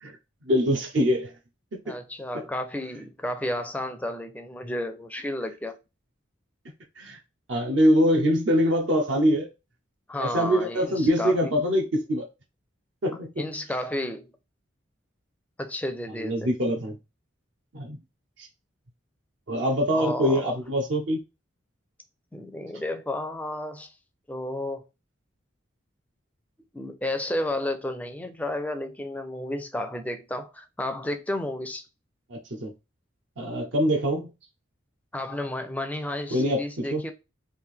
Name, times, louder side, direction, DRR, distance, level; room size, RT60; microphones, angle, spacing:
voice 1, 0.5-1.3 1.9-2.0 2.3-2.4 7.0-7.2 7.5-9.5 10.2-12.3 13.0-13.4 16.2-16.9 17.7-18.0 18.4-18.5 19.5-21.2 32.3-32.7 33.4-34.3 36.3-37.0, equal, 65° right, 0.7 m, -24 dB
voice 2, 1.8-5.8 10.1-11.5 13.4-14.3 15.6-16.5 19.9-20.6 22.3-24.0 24.3-24.8 26.7-31.8 35.1-37.1, left 1 dB, 10° left, 0.4 m, -32 dB
3.4 x 2.5 x 3.6 m
head